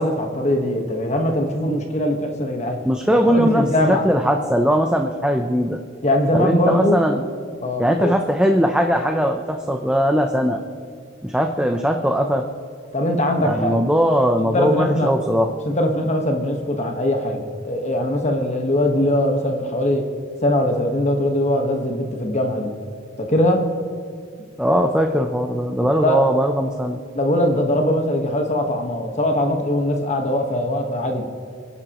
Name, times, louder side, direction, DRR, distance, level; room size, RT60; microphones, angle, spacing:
voice 1, 0.0-2.8 3.1-4.1 6.0-7.0 7.6-8.1 12.9-13.8 14.5-15.1 15.6-20.0 20.4-22.7 23.2-23.6 26.0-26.2 27.1-31.2, left 1 dB, 35° left, 3 dB, 1.4 m, -21 dB
voice 2, 2.8-5.8 6.3-7.2 7.8-10.6 11.2-12.5 13.4-15.5 24.6-27.0, equal, 5° right, 3 dB, 0.6 m, -20 dB
29.0 x 11.0 x 3.1 m, 2.2 s
head